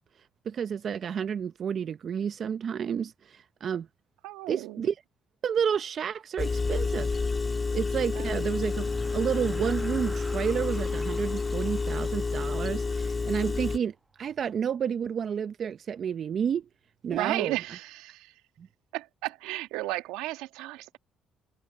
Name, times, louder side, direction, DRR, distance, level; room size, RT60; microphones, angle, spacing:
voice 1, 0.4-3.9 4.5-4.9 5.4-7.2 7.7-16.7 17.0-17.6 18.6-18.7, right 7 dB, 50° right, 0.6 m, -30 dB
voice 2, 4.2-4.9 8.1-8.2 17.1-18.4 18.9-21.0, right 17 dB, 90° right, 1.5 m, -34 dB
Engine, 6.4-13.8, left 4 dB, 30° left, 1.8 m, -29 dB
sound 1, 7.9-13.6, right 1 dB, 10° right, 1.4 m, -46 dB
supercardioid pair, 85°, 0 cm